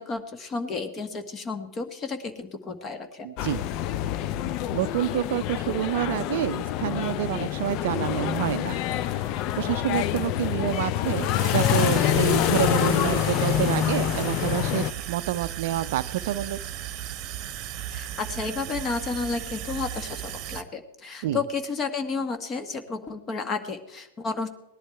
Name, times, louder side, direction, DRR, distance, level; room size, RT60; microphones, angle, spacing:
voice 1, 0.0-3.3 17.9-24.5, left 4 dB, 25° left, 8 dB, 1.5 m, -32 dB
voice 2, 3.2-3.7 4.7-16.6 21.2-21.4, right 13 dB, 55° right, 15 dB, 0.5 m, -28 dB
sound 1, 3.4-14.9, left 12 dB, 45° left, 0.5 m, -26 dB
sound 2, 11.4-20.6, right 11 dB, 40° right, 1.0 m, -36 dB
18.5 x 11.0 x 4.5 m, 0.88 s
figure-of-eight pair, 90°, 0 cm